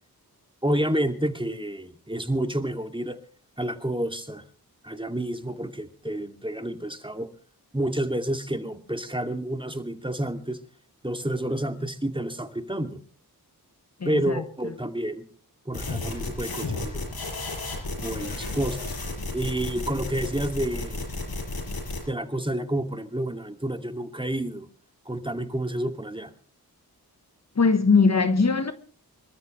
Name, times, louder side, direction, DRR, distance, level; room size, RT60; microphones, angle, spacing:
voice 1, 0.6-3.2 3.6-4.4 4.8-7.3 7.7-10.6 11.0-13.0 14.0-15.2 15.7-17.1 18.0-18.9 19.3-21.0 22.1-24.7 25.1-26.3, right 1 dB, 15° right, 2.5 m, -29 dB
voice 2, 14.0-14.7 27.6-28.7, left 4 dB, 45° left, 1.3 m, -21 dB
sound 1, 15.7-22.0, left 2 dB, 70° left, 5.9 m, -32 dB
26.5 x 13.5 x 3.3 m
cardioid pair, 50°, 38 cm